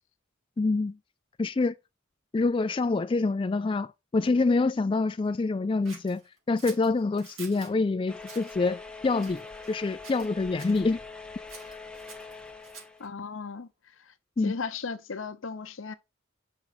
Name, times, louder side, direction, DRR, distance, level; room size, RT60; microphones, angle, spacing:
voice 1, 0.6-1.0 1.4-1.8 2.3-6.2 6.5-9.4 9.7-11.0 14.4-14.5, left 3 dB, 25° left, 0.3 m, -26 dB
Scissors, 5.9-7.7 8.2-8.6 9.2-9.8 10.0-10.8 11.5-13.1, right 4 dB, 85° right, 3.7 m, -48 dB
sound 1, 8.1-13.1, left 4 dB, 5° left, 0.8 m, -43 dB
voice 2, 13.0-14.1 14.4-15.9, left 4 dB, 75° left, 0.8 m, -36 dB
5.8 x 5.5 x 4.1 m
head